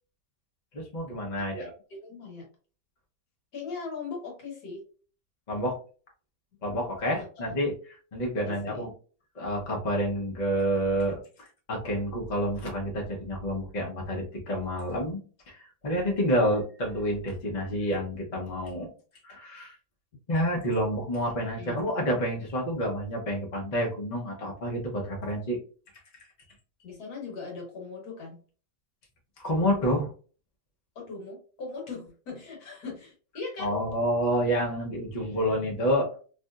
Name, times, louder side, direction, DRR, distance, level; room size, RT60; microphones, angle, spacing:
voice 1, 0.7-1.7 5.5-5.8 6.6-7.7 8.1-8.9 9.3-15.2 15.5-15.6 15.8-18.9 19.2-19.7 20.3-25.6 29.4-30.1 33.6-36.1, equal, 35° left, -1 dB, 0.7 m, -28 dB
voice 2, 1.4-2.5 3.5-4.8 8.4-8.9 21.6-21.8 26.8-28.4 30.9-33.8, left 4 dB, 65° left, 0 dB, 1.5 m, -39 dB
3.3 x 2.6 x 2.3 m, 0.38 s
omnidirectional pair, 1.8 m